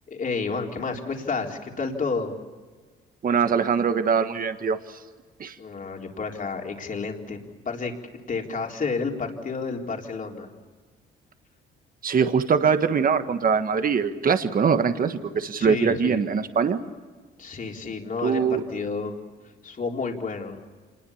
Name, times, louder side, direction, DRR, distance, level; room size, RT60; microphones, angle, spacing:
voice 1, 0.1-2.3 5.6-7.4 7.7-7.9 8.3-10.5 15.5-16.3 17.4-19.1 19.6-20.6, left 4 dB, 40° left, 1 dB, 3.9 m, -30 dB
voice 2, 3.2-5.0 5.4-5.5 12.0-16.8 18.2-18.6, right 6 dB, 45° right, 9 dB, 1.5 m, -22 dB
27.0 x 20.5 x 7.2 m, 1.5 s
cardioid pair, 90°, 20 cm